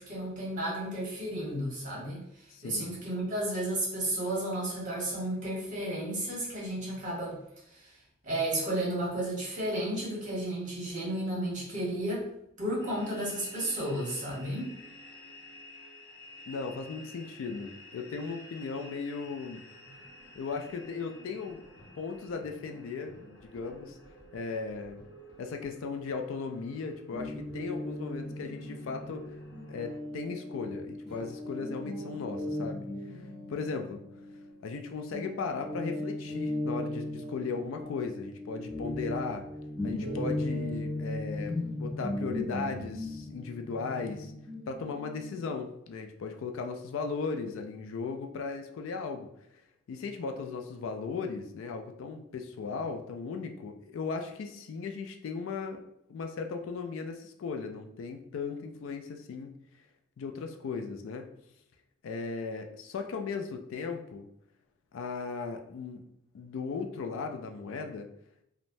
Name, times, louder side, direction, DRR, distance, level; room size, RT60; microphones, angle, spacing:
voice 1, 0.0-2.2 2.6-7.4 7.7-7.9 8.2-12.3 12.6-14.7, right 1 dB, 40° right, -5 dB, 1.1 m, -33 dB
voice 2, 2.5-2.9 16.5-19.6 20.3-21.6 22.0-23.2 23.5-24.0 24.3-25.0 25.4-29.2 29.7-32.9 33.5-34.0 34.6-39.5 39.8-44.3 44.7-49.3 49.9-55.8 56.1-59.5 60.2-61.3 62.0-64.3 64.9-66.1 66.3-68.1, left 4 dB, 75° left, 5 dB, 0.3 m, -37 dB
sound 1, 12.8-30.0, left 1 dB, 50° left, 0.7 m, -51 dB
Guitar, 27.1-34.8 35.1-45.6, left 1 dB, 5° right, 0.7 m, -37 dB
3.1 x 2.0 x 2.6 m, 0.77 s
head